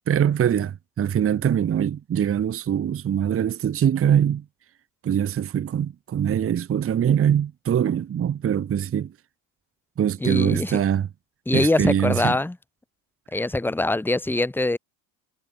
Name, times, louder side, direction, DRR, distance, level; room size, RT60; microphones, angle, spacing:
voice 1, 0.1-4.4 5.0-9.1 10.0-11.1 11.5-12.4, right 9 dB, 30° right, 0.8 m, -23 dB
voice 2, 10.2-10.8 11.5-12.6 13.3-14.8, left 2 dB, 5° left, 0.8 m, -23 dB
hypercardioid pair, 75°, 48 cm